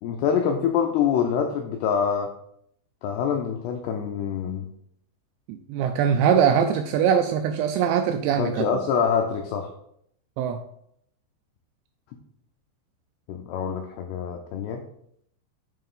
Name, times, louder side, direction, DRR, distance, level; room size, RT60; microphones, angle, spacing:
voice 1, 0.0-2.3 3.0-4.7 8.4-9.7 13.3-14.8, left 7 dB, 85° left, 3 dB, 2.3 m, -25 dB
voice 2, 5.5-8.7 10.4-10.6, right 8 dB, 85° right, 7 dB, 2.5 m, -22 dB
9.0 x 3.3 x 5.4 m, 0.70 s
omnidirectional pair, 5.5 m